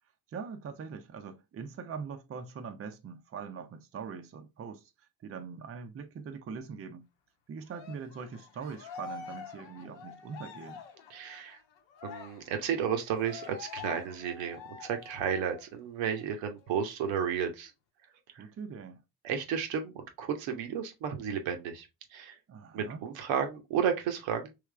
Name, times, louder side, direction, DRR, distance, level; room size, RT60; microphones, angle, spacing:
voice 1, 0.3-4.9 5.2-7.0 7.5-10.8 18.4-19.0 22.5-23.0, right 6 dB, 30° right, 0.6 m, -42 dB
Cheering, 7.7-15.7 16.0-16.2 16.6-17.6, left 6 dB, 65° left, 0.8 m, -47 dB
voice 2, 11.1-11.6 12.0-17.7 18.4-18.5 19.2-21.9 22.1-22.4 22.7-24.5, right 7 dB, 65° right, 0.9 m, -33 dB
3.4 x 3.2 x 3.2 m
figure-of-eight pair, 45°, 49 cm